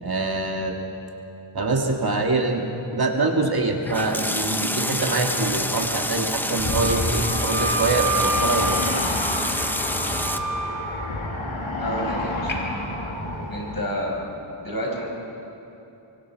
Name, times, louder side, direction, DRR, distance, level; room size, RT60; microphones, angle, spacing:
voice 1, 0.0-0.8 1.5-2.7 2.9-9.2, right 2 dB, 45° right, 2 dB, 1.9 m, -24 dB
sound 1, 3.8-10.4, left 1 dB, 5° left, 0.7 m, -27 dB
sound 2, 6.6-13.8, left 1 dB, 70° left, 2.6 m, -29 dB
Wind instrument woodwind instrument, 6.6-10.9, right 3 dB, 30° right, 3.1 m, -29 dB
voice 2, 11.8-12.6 13.5-14.1 14.6-15.1, equal, 45° left, -2 dB, 5.7 m, -29 dB
24.5 x 24.0 x 4.6 m, 3.0 s
wide cardioid pair, 100°, 49 cm